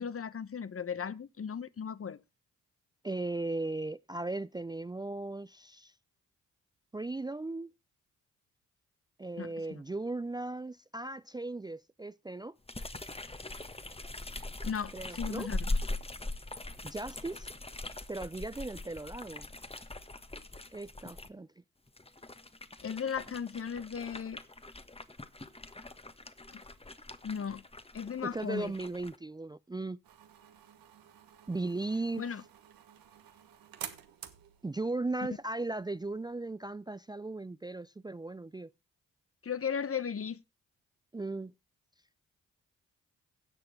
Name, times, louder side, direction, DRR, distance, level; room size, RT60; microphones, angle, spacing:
voice 1, 0.0-2.2 9.4-9.8 14.6-15.6 22.8-24.4 26.5-26.6 27.2-27.6 27.9-28.7 32.2-32.4 39.4-40.4, left 7 dB, 40° left, 1.0 m, -36 dB
voice 2, 3.0-5.9 6.9-7.7 9.2-12.5 14.9-15.5 16.8-17.5 18.1-19.5 20.7-21.5 28.2-30.0 31.5-32.2 34.6-38.7 41.1-41.5, right 2 dB, 10° right, 0.5 m, -37 dB
sound 1, 12.7-21.3 21.9-29.2, left 2 dB, 15° left, 1.4 m, -41 dB
sound 2, 30.0-36.3, right 10 dB, 80° right, 1.5 m, -51 dB
17.0 x 6.7 x 3.7 m
hypercardioid pair, 40°, 35 cm